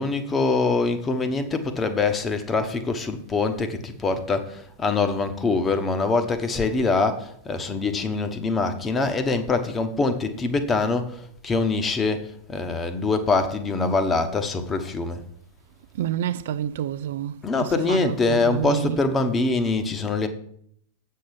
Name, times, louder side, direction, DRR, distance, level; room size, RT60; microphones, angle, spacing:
voice 1, 0.0-15.2 17.4-20.3, left 3 dB, 20° left, 1.1 m, -24 dB
voice 2, 15.9-19.1, right 10 dB, 55° right, 0.3 m, -29 dB
8.4 x 6.5 x 5.8 m
figure-of-eight pair, 90°, 0 cm